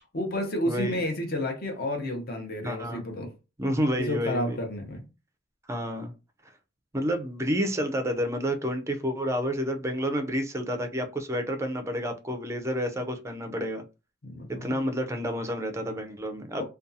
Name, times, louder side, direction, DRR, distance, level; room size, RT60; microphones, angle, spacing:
voice 1, 0.1-3.3 4.0-5.0 14.2-14.8 16.6-16.7, left 1 dB, 45° left, 0.8 m, -31 dB
voice 2, 0.7-1.0 2.6-3.0 3.6-4.6 5.7-6.1 6.9-13.8 14.6-16.6, equal, 15° right, 0.4 m, -29 dB
2.6 x 2.3 x 2.6 m
head